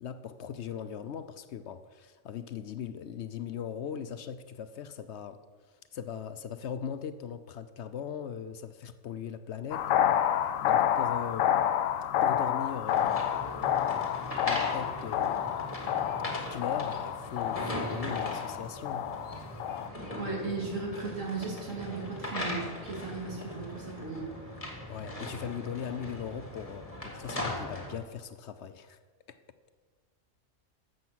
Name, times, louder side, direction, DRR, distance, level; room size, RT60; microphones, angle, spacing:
voice 1, 0.0-5.4 5.9-9.9 10.6-11.5 12.2-15.5 16.5-19.1 24.9-29.0 29.3-29.4, left 8 dB, 65° left, 0.8 m, -39 dB
sound 1, 9.7-19.9, left 10 dB, 90° left, 1.0 m, -29 dB
sound 2, 12.9-28.0, left 1 dB, 25° left, 1.9 m, -39 dB
voice 2, 20.2-24.3, right 4 dB, 75° right, 3.1 m, -36 dB
13.0 x 7.9 x 6.1 m
omnidirectional pair, 1.3 m